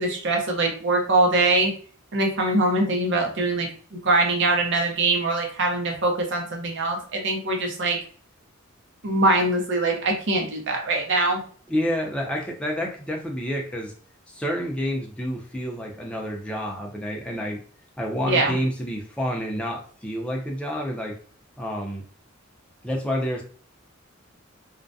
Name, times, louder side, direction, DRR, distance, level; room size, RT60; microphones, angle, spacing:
voice 1, 0.0-1.7 2.1-8.0 9.0-11.4 18.3-18.5, right 2 dB, 60° right, 1 dB, 0.7 m, -23 dB
voice 2, 11.7-13.9 14.3-17.6 18.0-21.1 21.6-22.0 22.8-23.4, equal, 5° left, -1 dB, 0.5 m, -29 dB
2.4 x 2.1 x 2.6 m, 0.43 s
head